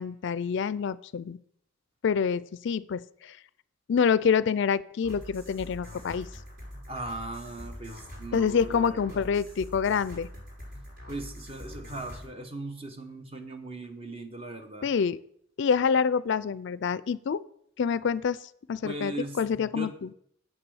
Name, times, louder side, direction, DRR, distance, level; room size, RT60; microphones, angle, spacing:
voice 1, 0.0-1.4 2.0-3.4 3.9-6.3 8.3-10.3 14.8-15.2 15.6-17.4 17.8-18.4 18.7-20.1, left 6 dB, 60° left, 17 dB, 0.4 m, -27 dB
sound 1, 5.0-12.3, equal, 60° right, 5.3 m, -44 dB
voice 2, 6.9-9.2 11.1-14.9 18.8-20.1, right 2 dB, 30° right, 7 dB, 1.1 m, -39 dB
8.1 x 6.9 x 7.0 m, 0.69 s
head